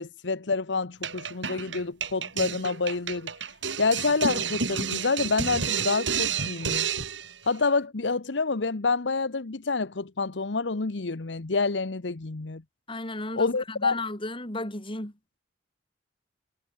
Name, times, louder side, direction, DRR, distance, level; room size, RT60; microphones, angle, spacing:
voice 1, 0.0-3.3 3.8-6.9 7.4-12.6 13.4-14.0, left 4 dB, 75° left, 1.0 m, -28 dB
sound 1, 1.0-7.3, right 6 dB, 90° right, 6.3 m, -30 dB
voice 2, 12.9-15.1, left 2 dB, 30° left, 5.9 m, -34 dB
head